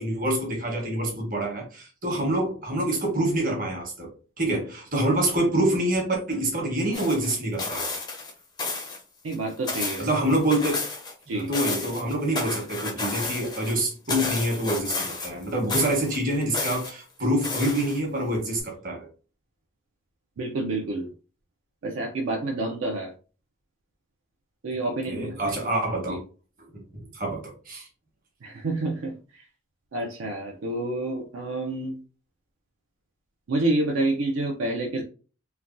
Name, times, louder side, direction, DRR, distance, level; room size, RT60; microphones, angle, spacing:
voice 1, 0.0-4.1 4.4-7.9 10.0-10.8 11.3-19.1 25.1-26.2 26.7-27.9, right 1 dB, 40° right, -1 dB, 1.0 m, -26 dB
sound 1, 6.9-8.3 8.6-9.0 9.3-11.1 11.4-13.7 14.1-15.4 15.7-16.9 17.4-18.2 18.6-18.7, left 3 dB, 20° left, 0.4 m, -31 dB
voice 2, 9.2-10.1 11.3-11.5 20.4-21.1 21.8-23.1 24.6-25.5 26.1-26.2 28.4-29.5 29.9-32.0 33.5-35.0, right 2 dB, 65° right, 0 dB, 0.4 m, -28 dB
3.2 x 2.2 x 2.5 m, 0.37 s
head